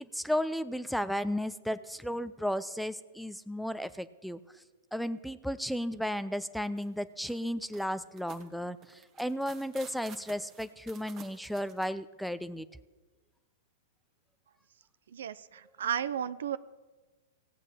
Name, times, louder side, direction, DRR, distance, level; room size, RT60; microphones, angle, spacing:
voice 1, 0.0-4.4 4.9-12.7, equal, ahead, 14 dB, 0.5 m, -34 dB
sound 1, 6.8-6.9 7.2-11.9, right 7 dB, 30° right, 1.4 m, -52 dB
voice 2, 15.1-16.6, right 9 dB, 75° right, 15 dB, 0.6 m, -34 dB
16.5 x 8.3 x 7.1 m, 1.2 s
hypercardioid pair, 120°, 0 cm